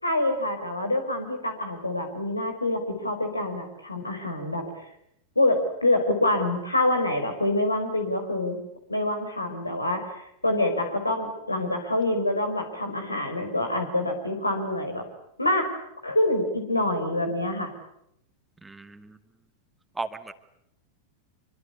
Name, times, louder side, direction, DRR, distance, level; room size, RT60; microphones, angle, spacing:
voice 1, 0.0-4.9 5.4-8.6 8.9-15.0 15.4-15.7 16.0-17.7, left 1 dB, 85° left, 5 dB, 5.4 m, -26 dB
voice 2, 18.6-19.2 20.0-20.3, right 3 dB, 10° right, 10 dB, 2.0 m, -36 dB
27.0 x 24.5 x 8.6 m, 0.77 s
figure-of-eight pair, 90°, 0 cm